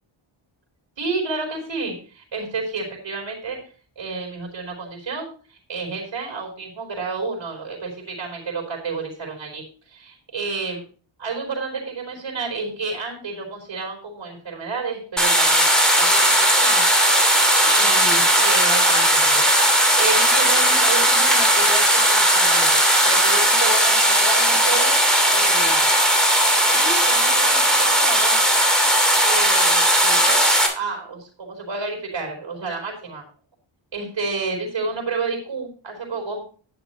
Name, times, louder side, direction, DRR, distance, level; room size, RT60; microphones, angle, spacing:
voice 1, 1.0-3.6 4.0-10.8 11.2-16.8 17.6-25.0 25.3-25.9 26.6-28.3 29.2-30.4 30.7-33.2 33.9-36.4, right 4 dB, 60° right, 0 dB, 4.5 m, -30 dB
sound 1, 15.2-30.7, right 1 dB, ahead, 2.8 m, -17 dB
11.5 x 10.0 x 3.1 m, 0.39 s
wide cardioid pair, 150°, 49 cm